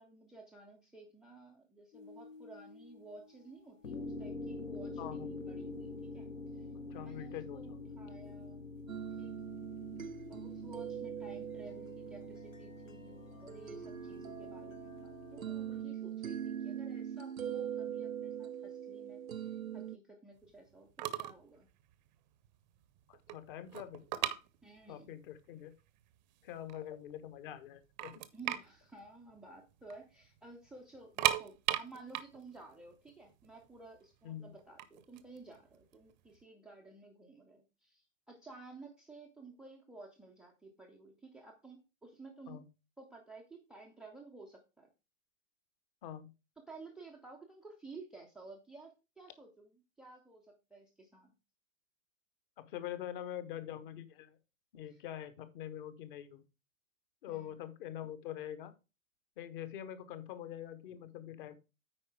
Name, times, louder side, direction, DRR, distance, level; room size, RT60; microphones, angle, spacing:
voice 1, 0.0-6.7 6.9-8.7 9.2-9.4 10.3-21.7 24.6-25.1 28.3-42.6 43.0-44.9 46.6-51.3 54.9-55.0 57.3-57.6, right 3 dB, ahead, 2 dB, 0.4 m, -54 dB
sound 1, 1.9-3.5 3.8-15.8, left 3 dB, 75° left, 1.4 m, -47 dB
voice 2, 5.0-5.4 6.9-7.8 23.1-24.0 24.9-25.7 26.4-28.1 34.2-34.5 42.5-42.7 46.0-46.3 52.6-54.4 54.7-56.4 57.2-58.7 59.4-61.5, left 11 dB, 40° left, 13 dB, 1.2 m, -44 dB
sound 2, 8.9-20.0, right 9 dB, 90° right, 0.5 m, -42 dB
sound 3, 20.7-20.8 21.0-21.4 21.7-21.9 22.4-22.5 22.8-25.1 25.3-25.4 26.1-26.2 26.5-27.3 27.6-27.7 28.0-30.0 30.2-30.4 30.9-33.9 34.6-36.3, right 13 dB, 35° right, 0.7 m, -36 dB
8.7 x 4.8 x 4.7 m, 0.28 s
figure-of-eight pair, 105°, 40 cm